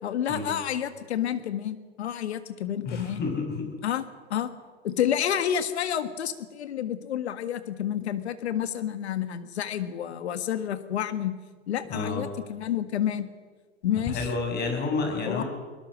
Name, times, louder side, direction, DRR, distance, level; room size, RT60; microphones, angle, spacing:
voice 1, 0.0-3.2 3.8-4.0 4.3-4.5 4.8-11.4 11.7-13.3 13.8-14.3 15.2-15.4, left 10 dB, 70° left, 11 dB, 1.8 m, -29 dB
voice 2, 2.8-3.7 11.9-12.2 14.0-15.4, left 4 dB, 30° left, 3 dB, 6.5 m, -29 dB
22.0 x 20.0 x 6.4 m, 1.5 s
hypercardioid pair, 110°, 34 cm